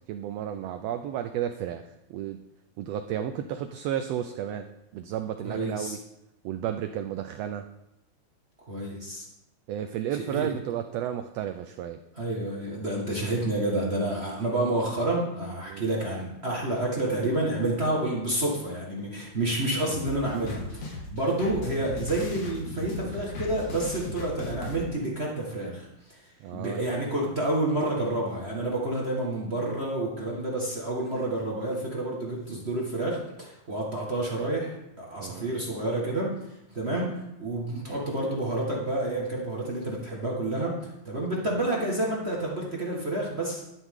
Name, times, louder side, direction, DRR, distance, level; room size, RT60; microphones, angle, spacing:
voice 1, 0.1-2.4 2.8-6.0 6.4-7.7 9.7-12.0 15.7-15.8 26.4-26.8 35.2-35.5, right 10 dB, 80° right, 8 dB, 1.4 m, -33 dB
voice 2, 5.4-6.0 8.7-9.3 10.1-10.5 12.1-26.2 26.5-36.4 36.7-43.6, right 1 dB, 30° right, -3 dB, 1.2 m, -29 dB
sound 1, 19.9-24.8, left 2 dB, 70° left, 3.2 m, -37 dB
11.5 x 10.5 x 3.7 m, 0.87 s
omnidirectional pair, 3.5 m